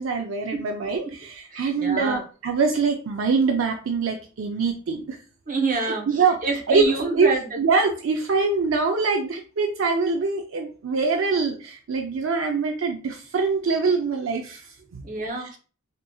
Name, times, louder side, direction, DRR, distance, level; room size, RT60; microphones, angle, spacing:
voice 1, 0.0-5.2 5.7-15.0, right 4 dB, 65° right, 4 dB, 0.4 m, -24 dB
voice 2, 1.5-2.2 5.5-7.6 15.0-15.6, right 3 dB, 40° right, 2 dB, 0.8 m, -27 dB
3.7 x 2.9 x 2.3 m, 0.37 s
head